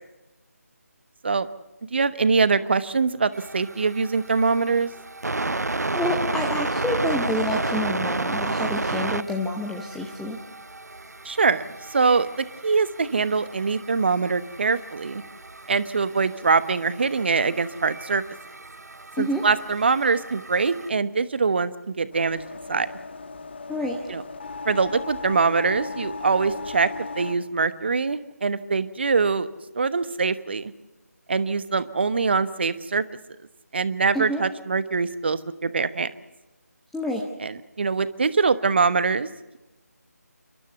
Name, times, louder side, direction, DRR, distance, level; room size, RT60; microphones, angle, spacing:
voice 1, 1.9-4.9 11.2-11.6 11.9-15.2 15.7-18.2 19.2-22.4 22.7-22.9 24.1-24.2 24.6-26.9 27.2-29.5 29.7-30.7 31.3-33.0 33.7-36.1 37.4-39.3, right 4 dB, 40° right, 14 dB, 1.2 m, -23 dB
sound 1, 3.3-20.9, right 2 dB, 75° right, 0.7 m, -32 dB
voice 2, 5.9-10.4 19.2-19.4 23.7-24.0 34.1-34.4 36.9-37.2, left 1 dB, ahead, 0 dB, 0.8 m, -28 dB
sound 2, 22.1-27.3, left 4 dB, 40° left, 1.6 m, -36 dB
30.0 x 13.5 x 8.0 m, 1.0 s
figure-of-eight pair, 160°, 9 cm